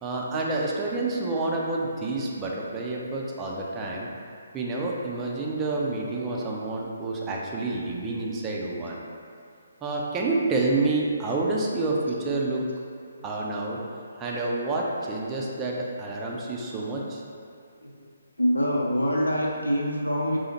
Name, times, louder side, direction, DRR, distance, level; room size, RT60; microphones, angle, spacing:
voice 1, 0.0-4.1 4.5-9.0 9.8-12.6 13.2-13.8 14.2-17.2, right 2 dB, 15° right, -3 dB, 0.4 m, -28 dB
voice 2, 18.4-20.4, equal, 85° left, -2 dB, 0.6 m, -25 dB
4.8 x 2.0 x 2.9 m, 2.3 s
figure-of-eight pair, 140°, 0 cm